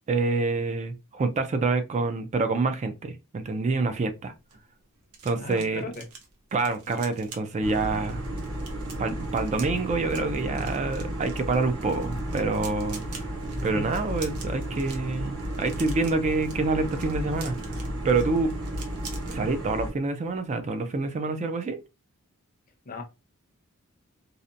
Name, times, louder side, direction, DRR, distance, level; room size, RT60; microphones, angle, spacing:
voice 1, 0.1-4.3 5.2-5.8 6.5-8.2 9.0-13.3 13.6-17.8 18.0-18.5 19.3-21.8, right 3 dB, 30° right, 0.3 m, -27 dB
sound 1, 4.2-19.4 19.7-20.0 20.3-20.5, right 5 dB, 90° right, 0.7 m, -47 dB
voice 2, 5.3-6.0 13.7-13.9 22.9-23.0, left 2 dB, 40° left, 0.6 m, -37 dB
sound 2, 7.6-19.9, right 1 dB, 65° right, 1.0 m, -33 dB
2.7 x 2.1 x 2.5 m
head